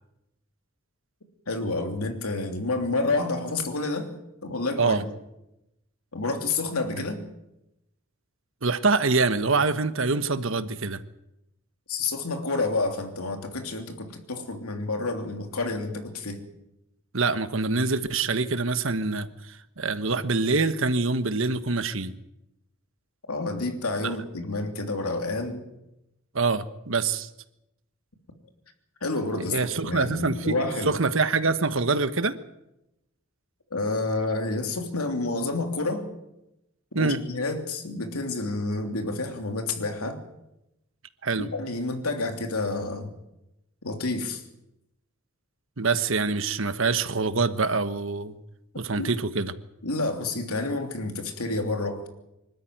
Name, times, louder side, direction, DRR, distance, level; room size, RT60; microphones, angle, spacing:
voice 1, 1.5-4.1 4.4-5.1 6.1-7.2 11.9-16.4 23.3-25.6 29.0-29.5 29.8-31.0 33.7-36.1 36.9-40.2 41.3-43.1 43.8-44.4 49.0-49.1 49.8-52.1, left 3 dB, 90° left, 5 dB, 3.2 m, -29 dB
voice 2, 8.6-11.0 17.1-19.3 19.8-22.1 26.3-27.3 29.5-30.6 30.8-32.4 36.9-37.2 41.2-41.5 45.8-48.4 48.8-49.5, right 3 dB, 65° right, 11 dB, 1.2 m, -25 dB
25.5 x 13.0 x 9.4 m, 0.89 s
head